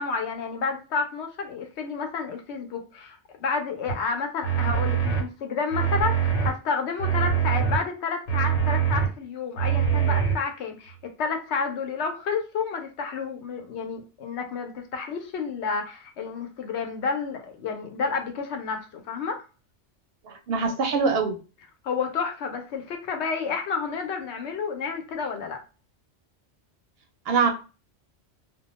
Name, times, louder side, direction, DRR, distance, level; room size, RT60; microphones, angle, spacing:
voice 1, 0.0-19.5 21.8-25.6, left 5 dB, 70° left, 5 dB, 0.8 m, -30 dB
sound 1, 3.9-4.0 4.4-5.2 5.7-6.5 7.0-7.8 8.3-9.1 9.6-10.4, right 8 dB, 90° left, 1.1 m, -23 dB
voice 2, 20.2-21.4 27.3-27.5, right 5 dB, 65° right, 2 dB, 0.7 m, -23 dB
2.2 x 2.1 x 2.9 m, 0.33 s
omnidirectional pair, 1.2 m